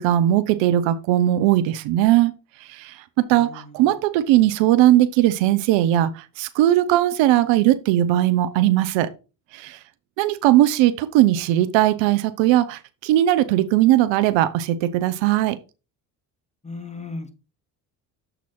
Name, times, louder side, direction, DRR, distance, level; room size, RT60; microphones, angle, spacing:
voice 1, 0.0-2.3 2.7-9.1 9.5-9.8 10.2-15.6, right 13 dB, 75° right, 0.7 m, -19 dB
voice 2, 3.3-3.9 16.6-17.3, left 3 dB, 15° left, 1.8 m, -36 dB
7.5 x 4.1 x 4.2 m
supercardioid pair, 65°, 46 cm